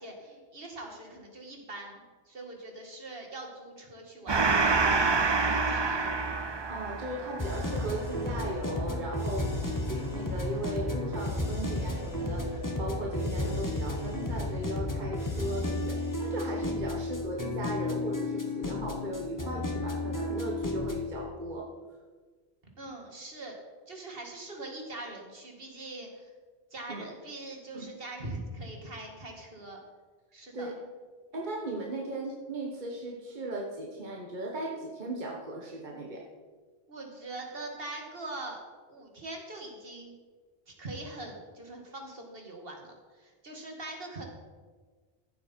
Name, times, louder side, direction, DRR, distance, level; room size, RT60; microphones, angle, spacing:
voice 1, 0.0-6.1 22.8-23.5 23.9-26.3 26.7-29.8 30.3-30.7 36.9-38.6 38.9-40.2 40.7-44.3, right 2 dB, 65° right, 2 dB, 2.1 m, -42 dB
Gong, 4.3-11.2, right 4 dB, 30° right, 0.6 m, -29 dB
voice 2, 6.7-9.5 9.8-21.7 26.9-27.1 27.7-27.9 30.5-30.8 31.3-36.2, right 1 dB, 50° right, 0 dB, 1.4 m, -37 dB
sound 1, 7.4-21.1, left 2 dB, 20° left, 1.3 m, -33 dB
14.5 x 7.8 x 4.4 m, 1.4 s
omnidirectional pair, 1.0 m